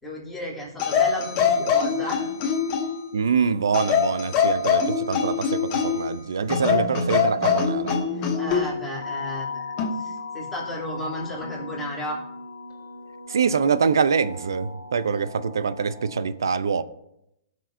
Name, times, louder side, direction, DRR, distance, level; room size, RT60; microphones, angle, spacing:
voice 1, 0.0-2.3 6.7-6.8 8.1-12.2, left 1 dB, 5° left, -6 dB, 3.1 m, -34 dB
sound 1, 0.8-3.0 3.7-6.1 6.5-8.7 9.8-10.0, left 6 dB, 35° left, 1.3 m, -23 dB
voice 2, 3.1-8.0 13.3-16.8, right 6 dB, 85° right, 15 dB, 0.6 m, -24 dB
sound 2, 6.6-16.3, left 3 dB, 85° left, 1.8 m, -38 dB
18.0 x 6.4 x 2.6 m, 0.81 s
hypercardioid pair, 140°, 2 cm